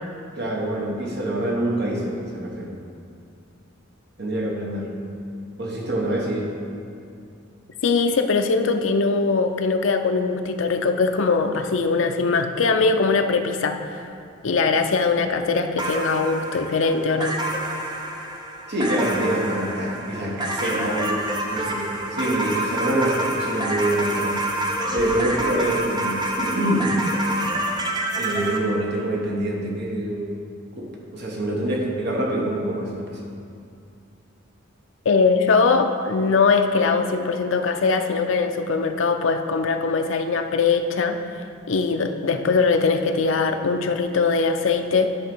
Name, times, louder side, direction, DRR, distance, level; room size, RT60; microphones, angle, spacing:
voice 1, 0.3-2.8 4.2-4.9 5.6-6.5 18.7-21.2 21.5-24.4 24.9-27.0 28.1-30.3 30.8-33.2, right 1 dB, 55° right, -1 dB, 1.3 m, -25 dB
voice 2, 7.8-14.0 14.4-17.4 35.1-41.2 41.7-45.2, left 4 dB, 65° left, 5 dB, 0.5 m, -21 dB
sound 1, 15.8-28.6, right 1 dB, 20° right, 0.7 m, -28 dB
11.0 x 3.8 x 6.2 m, 2.5 s
head